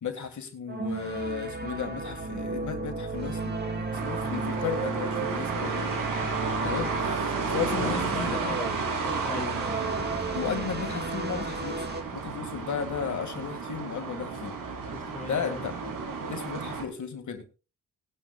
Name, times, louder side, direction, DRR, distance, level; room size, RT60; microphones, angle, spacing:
voice 1, 0.0-6.0 6.3-8.4 10.3-11.9 12.1-14.6 15.2-15.7 16.3-17.5, left 7 dB, 55° left, 1.9 m, -35 dB
sound 1, 0.7-12.0, right 3 dB, 30° right, 2.3 m, -33 dB
sound 2, 3.9-16.8, right 5 dB, 65° right, 3.0 m, -33 dB
voice 2, 7.7-8.9 9.2-9.7 14.9-15.6, left 4 dB, 20° left, 2.2 m, -38 dB
18.5 x 11.0 x 2.3 m
wide cardioid pair, 135°, 34 cm